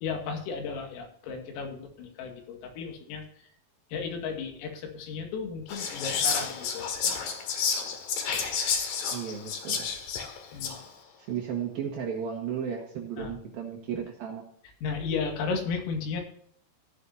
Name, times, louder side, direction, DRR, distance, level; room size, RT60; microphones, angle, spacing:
voice 1, 0.0-3.5 3.9-6.9 10.5-10.8 13.2-13.4 14.8-16.2, left 5 dB, 85° left, 3 dB, 4.6 m, -34 dB
Whispering, 5.7-10.9, left 6 dB, 60° left, 2.5 m, -30 dB
voice 2, 9.1-9.9 11.3-14.4, right 8 dB, 65° right, 1 dB, 2.6 m, -34 dB
15.0 x 10.5 x 2.8 m, 0.64 s
omnidirectional pair, 5.9 m